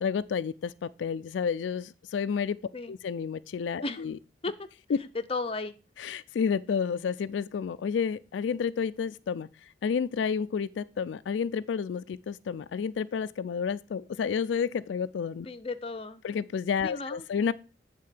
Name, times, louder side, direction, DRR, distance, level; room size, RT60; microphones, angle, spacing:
voice 1, 0.0-2.6 2.9-4.2 4.9-5.0 6.0-15.5 16.2-17.5, left 6 dB, 85° left, 0.3 m, -30 dB
voice 2, 5.0-5.7 15.5-16.2 16.8-17.2, left 3 dB, 30° left, 0.6 m, -34 dB
8.6 x 3.7 x 6.4 m
head